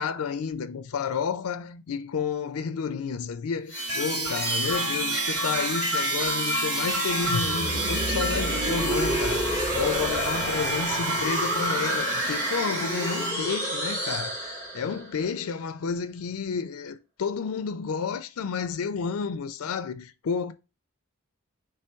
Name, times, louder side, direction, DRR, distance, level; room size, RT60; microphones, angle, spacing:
voice 1, 0.0-20.5, left 6 dB, 80° left, 0.4 m, -31 dB
sound 1, 3.7-13.3, right 1 dB, 90° right, 2.3 m, -29 dB
sound 2, 7.2-15.1, right 1 dB, 50° right, 2.0 m, -29 dB
3.4 x 3.3 x 4.4 m
head